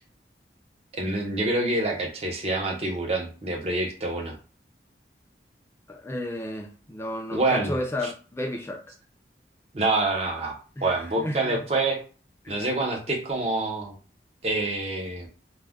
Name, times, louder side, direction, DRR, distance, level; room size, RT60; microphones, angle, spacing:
voice 1, 0.9-4.3 7.3-7.8 9.7-12.0 12.5-13.9 14.4-15.3, right 2 dB, 35° right, 0.6 m, -26 dB
voice 2, 5.9-8.8 10.8-11.6 12.4-12.6, left 1 dB, 15° left, 0.4 m, -32 dB
2.3 x 2.1 x 3.4 m
head